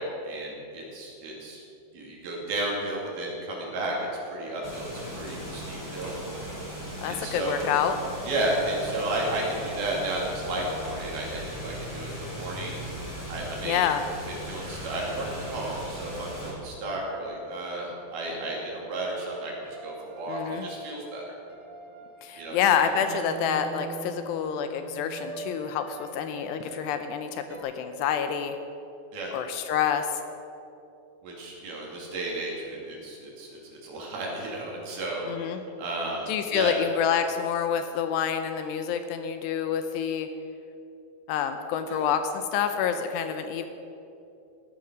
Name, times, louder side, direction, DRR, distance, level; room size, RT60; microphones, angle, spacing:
voice 1, 0.0-1.6 1.9-6.1 7.0-7.8 8.2-12.8 13.3-13.9 14.3-21.2 22.4-22.6 29.1-29.3 31.2-33.5 33.8-36.8 41.9-42.1, right 1 dB, 60° right, -2 dB, 4.2 m, -33 dB
sound 1, 4.6-16.5, equal, 5° left, 2.7 m, -38 dB
voice 2, 7.0-8.0 13.6-14.0 20.3-20.7 22.2-28.6 29.3-30.2 35.3-35.6 36.3-40.3 41.3-43.7, left 8 dB, 80° left, 8 dB, 2.7 m, -27 dB
sound 2, 18.0-27.6, right 4 dB, 85° right, 1.2 m, -44 dB
15.5 x 10.5 x 6.2 m, 2.8 s
omnidirectional pair, 5.1 m